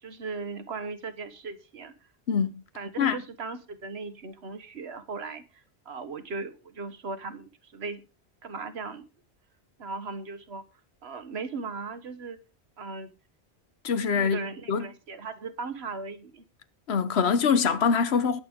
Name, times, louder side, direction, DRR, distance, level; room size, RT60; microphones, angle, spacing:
voice 1, 0.0-2.1 2.7-8.0 8.4-9.0 9.8-10.6 11.0-12.4 12.8-13.1 14.2-16.4, right 4 dB, 70° right, 1.4 m, -38 dB
voice 2, 13.8-14.9 16.9-18.4, left 6 dB, 70° left, 1.2 m, -24 dB
20.0 x 6.7 x 3.6 m
omnidirectional pair, 1.1 m